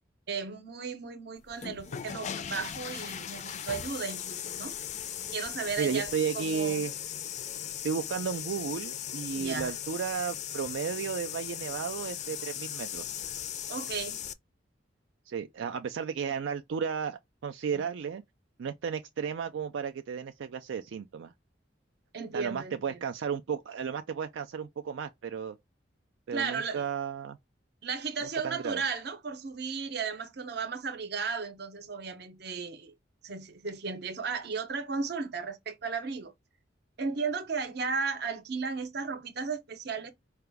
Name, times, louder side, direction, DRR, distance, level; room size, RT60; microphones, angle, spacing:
voice 1, 0.3-4.7 5.3-6.9 9.3-9.7 13.7-14.2 17.8-17.9 22.1-23.1 26.3-26.9 27.8-32.9 33.2-36.3 37.0-40.1, right 5 dB, 60° right, 0.7 m, -35 dB
sound 1, 1.5-14.3, left 10 dB, 40° left, 0.3 m, -38 dB
voice 2, 5.8-6.9 7.8-13.0 15.3-18.2 18.6-21.3 22.3-25.6 26.3-27.4 28.4-28.8, right 6 dB, 85° right, 0.4 m, -33 dB
4.7 x 2.3 x 3.4 m
head